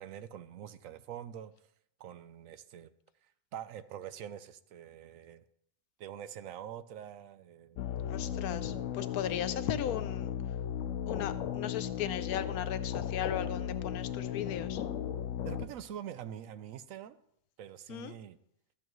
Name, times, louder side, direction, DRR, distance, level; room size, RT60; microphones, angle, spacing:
voice 1, 0.0-1.5 2.0-2.9 3.2-5.4 6.0-7.8 15.4-17.2 17.6-18.4, right 10 dB, 70° right, 13 dB, 0.9 m, -45 dB
sound 1, 7.8-15.7, left 9 dB, 70° left, 0.9 m, -36 dB
voice 2, 8.1-10.3 11.1-14.8 17.9-18.1, left 10 dB, 90° left, 12 dB, 1.1 m, -37 dB
13.0 x 8.8 x 3.1 m, 0.74 s
omnidirectional pair, 1.5 m